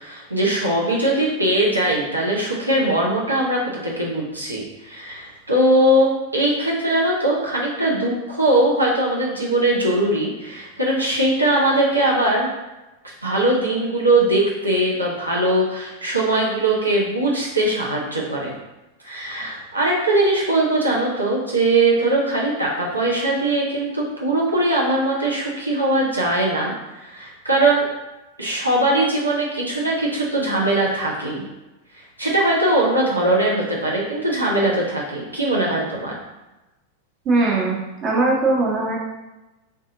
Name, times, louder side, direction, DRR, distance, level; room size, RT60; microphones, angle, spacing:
voice 1, 0.0-12.5 13.0-18.5 19.0-27.9 28.4-31.4 32.2-36.2, right 1 dB, 85° right, -4 dB, 0.7 m, -20 dB
voice 2, 37.2-39.0, right 3 dB, 35° right, -3 dB, 1.0 m, -20 dB
3.7 x 2.7 x 3.8 m, 1.0 s
figure-of-eight pair, 90°, 0 cm